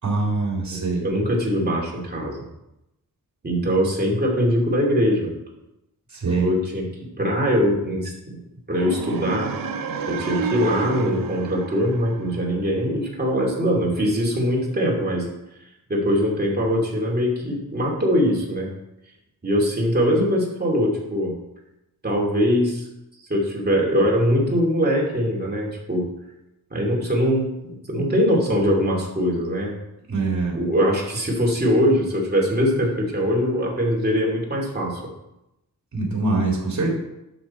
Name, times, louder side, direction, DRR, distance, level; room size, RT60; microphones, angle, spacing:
voice 1, 0.0-1.1 6.1-6.5 30.1-30.6 35.9-36.9, right 3 dB, 55° right, -1 dB, 3.2 m, -23 dB
voice 2, 0.7-2.5 3.4-5.3 6.3-8.4 8.7-9.5 10.1-15.3 15.9-18.7 19.4-21.4 22.0-22.8 23.3-26.1 26.7-29.7 30.5-35.0, equal, 30° right, -3 dB, 2.6 m, -22 dB
sound 1, 8.7-12.8, right 5 dB, 75° right, 0.9 m, -30 dB
12.0 x 6.3 x 4.3 m, 0.89 s
wide cardioid pair, 145°, 34 cm